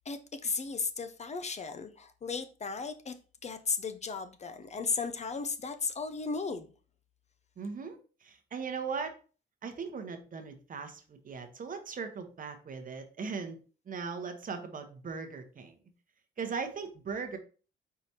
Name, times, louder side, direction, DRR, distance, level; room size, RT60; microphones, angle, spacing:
voice 1, 0.1-3.1 3.4-6.7, left 4 dB, 35° left, 0.5 m, -35 dB
voice 2, 7.6-9.1 9.6-13.6 13.9-15.8 16.4-17.4, right 5 dB, 45° right, 0.9 m, -39 dB
4.7 x 4.1 x 2.8 m
cardioid pair, 90°, 20 cm